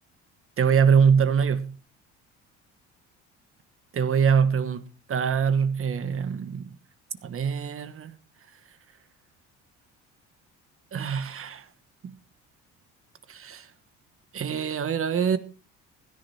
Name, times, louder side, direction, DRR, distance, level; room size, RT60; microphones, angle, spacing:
voice 1, 0.6-1.8 3.9-6.7 7.2-8.2 10.9-11.6 12.0-12.1 13.3-13.7 14.3-15.4, right 6 dB, 45° right, 1.3 m, -24 dB
16.0 x 10.0 x 4.3 m
supercardioid pair, 85°, 31 cm